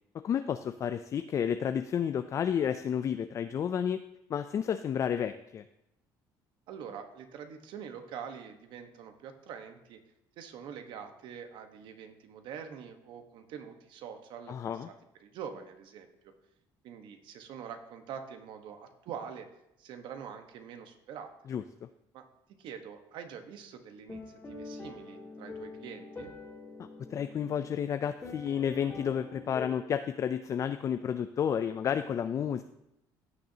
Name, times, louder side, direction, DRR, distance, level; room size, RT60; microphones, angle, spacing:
voice 1, 0.2-4.0 4.3-5.6 14.5-14.9 21.5-21.6 27.1-32.6, left 8 dB, 40° left, 10 dB, 0.4 m, -31 dB
voice 2, 6.7-10.0 10.4-14.9 15.2-16.3 16.8-19.5 19.8-21.3 22.1-22.2 22.6-24.2 24.5-26.3, right 7 dB, 70° right, 7 dB, 1.2 m, -45 dB
sound 1, 24.1-29.7, left 3 dB, 25° left, 2.1 m, -45 dB
16.0 x 6.6 x 2.8 m, 0.86 s
cardioid pair, 120°, 8 cm